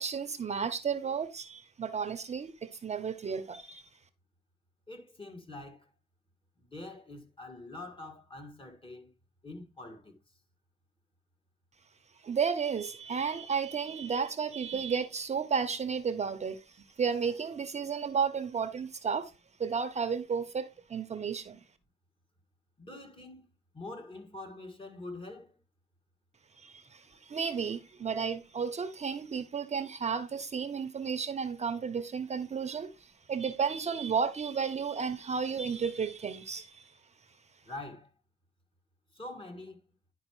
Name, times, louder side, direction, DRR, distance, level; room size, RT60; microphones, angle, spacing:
voice 1, 0.0-3.8 12.2-19.3 19.6-21.6 26.6-36.9, right 6 dB, 35° right, 0.7 m, -33 dB
voice 2, 4.9-5.9 6.6-9.1 9.4-10.2 22.8-23.4 23.7-25.6 37.7-38.1 39.1-39.8, left 2 dB, 25° left, 1.9 m, -45 dB
10.5 x 4.7 x 3.0 m
cardioid pair, 90°, 20 cm